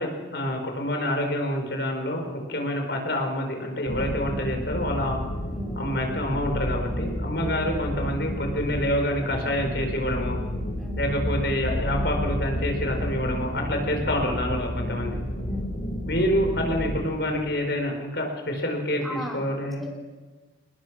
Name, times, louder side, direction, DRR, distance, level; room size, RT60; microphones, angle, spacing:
voice 1, 0.0-5.2 5.8-10.4 11.0-15.2 16.0-19.8, left 1 dB, 75° left, 3 dB, 4.9 m, -27 dB
sound 1, 3.9-17.0, equal, 90° left, 5.1 m, -31 dB
voice 2, 5.5-5.9 7.3-7.5 10.7-11.1 14.6-14.8 15.1-15.7 19.0-19.4 19.8-19.9, equal, ahead, -1 dB, 3.5 m, -37 dB
27.5 x 20.0 x 6.3 m, 1.3 s
head